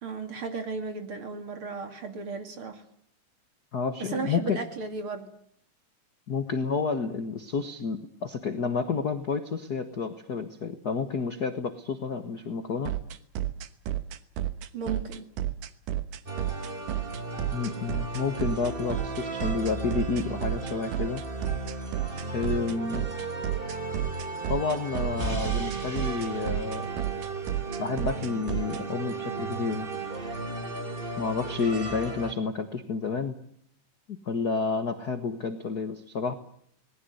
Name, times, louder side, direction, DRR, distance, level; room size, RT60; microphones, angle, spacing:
voice 1, 0.0-2.8 4.1-5.3 14.7-15.3, right 4 dB, 40° right, 6 dB, 3.1 m, -35 dB
voice 2, 3.7-4.6 6.3-12.9 17.5-21.2 22.3-23.1 24.5-26.9 27.8-29.9 31.2-33.4 34.1-36.3, left 5 dB, 50° left, 8 dB, 1.1 m, -30 dB
sound 1, 12.9-28.8, right 12 dB, 75° right, 2.7 m, -31 dB
sound 2, 16.3-32.3, right 3 dB, 20° right, 2.0 m, -35 dB
26.0 x 20.0 x 8.0 m, 0.67 s
omnidirectional pair, 3.9 m